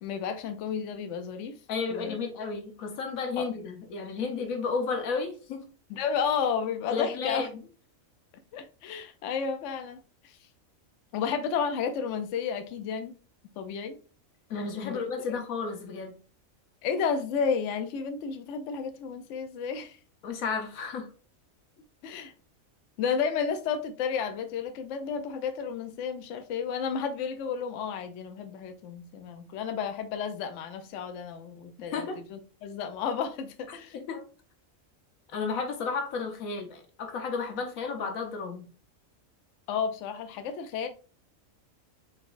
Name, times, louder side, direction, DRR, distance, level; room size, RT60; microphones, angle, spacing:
voice 1, 0.0-1.6 1.9-2.2 3.4-3.5 5.9-7.5 8.5-10.4 11.1-13.2 13.6-14.0 14.8-15.0 16.8-20.0 22.0-22.3 23.0-33.9 39.7-40.9, left 6 dB, 70° left, 0.9 m, -32 dB
voice 2, 1.7-5.6 6.9-7.5 14.5-16.1 20.2-21.1 31.9-32.2 33.7-34.2 35.3-38.6, left 5 dB, 85° left, 1.3 m, -32 dB
4.0 x 3.9 x 2.5 m
omnidirectional pair, 1.4 m